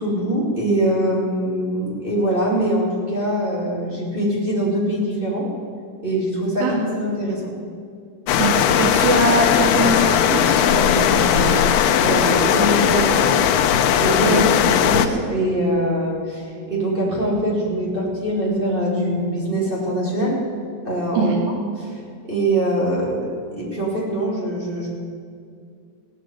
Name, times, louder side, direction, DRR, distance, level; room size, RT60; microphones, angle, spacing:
voice 1, 0.0-5.5 6.0-7.5 12.1-13.4 13.9-20.4 20.8-24.9, right 1 dB, 15° right, -6 dB, 2.9 m, -23 dB
sound 1, 8.3-15.1, left 9 dB, 80° left, 2.6 m, -18 dB
voice 2, 8.4-12.6 14.2-14.5 21.1-21.4, right 3 dB, 75° right, 0 dB, 3.2 m, -23 dB
Guitar, 18.4-21.5, left 2 dB, 45° right, 5.5 m, -30 dB
17.0 x 9.0 x 9.0 m, 2.3 s
omnidirectional pair, 5.0 m